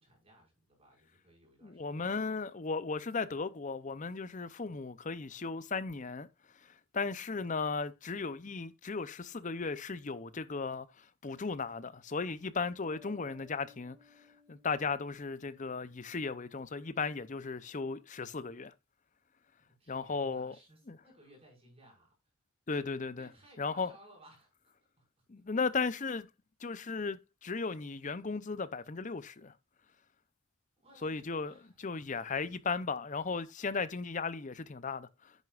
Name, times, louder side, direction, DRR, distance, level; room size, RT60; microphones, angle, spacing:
voice 1, 0.0-2.1 19.8-22.1 23.2-25.0 30.8-31.8, right 1 dB, 25° right, 5.6 m, -60 dB
voice 2, 1.6-6.3 6.9-14.0 14.5-18.7 19.9-20.5 20.9-21.0 22.7-23.3 23.6-23.9 25.3-26.3 26.6-29.5 31.0-31.5 31.8-35.3, left 4 dB, 35° left, 0.6 m, -36 dB
Bass guitar, 12.8-16.4, left 4 dB, 5° left, 2.7 m, -62 dB
10.5 x 9.5 x 2.5 m
head